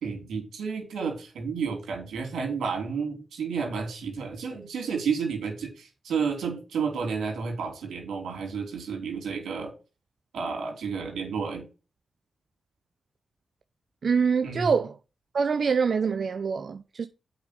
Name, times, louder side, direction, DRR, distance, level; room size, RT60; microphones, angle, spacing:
voice 1, 0.0-9.7 10.3-11.7 14.4-14.7, right 5 dB, 85° right, 3.1 m, -31 dB
voice 2, 14.0-14.9 15.3-17.1, right 5 dB, 65° right, 0.6 m, -25 dB
8.0 x 5.2 x 6.7 m
supercardioid pair, 40°, 0 cm